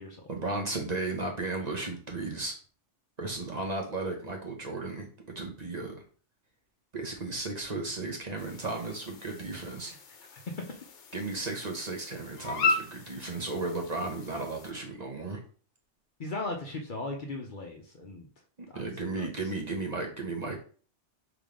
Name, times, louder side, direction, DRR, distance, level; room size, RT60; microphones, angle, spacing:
voice 1, 0.3-2.5 3.2-5.1 5.3-5.9 6.9-9.9 11.1-15.4 18.7-20.6, right 3 dB, 40° right, 1 dB, 0.8 m, -34 dB
sound 1, 8.4-14.7, left 4 dB, 80° left, 1.1 m, -36 dB
voice 2, 10.3-10.7 16.2-18.3 18.7-18.8 19.1-19.3, left 2 dB, 50° left, 2 dB, 0.7 m, -38 dB
3.6 x 3.0 x 4.8 m, 0.41 s
omnidirectional pair, 1.2 m